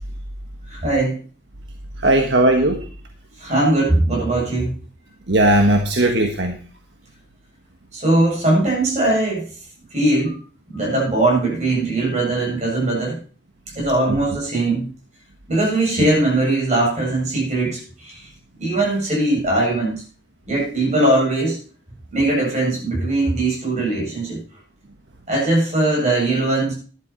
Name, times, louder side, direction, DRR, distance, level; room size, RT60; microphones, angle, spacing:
voice 1, 0.7-1.2 3.4-4.7 7.9-9.5 9.9-10.4 10.7-13.2 13.7-14.9 15.5-18.2 18.6-19.9 20.5-21.6 22.1-24.4 25.3-26.7, right 2 dB, 40° right, -2 dB, 7.9 m, -20 dB
voice 2, 2.0-2.8 5.3-6.6 16.0-16.1, right 1 dB, 70° right, 4 dB, 1.4 m, -17 dB
12.0 x 11.0 x 4.6 m, 0.39 s
head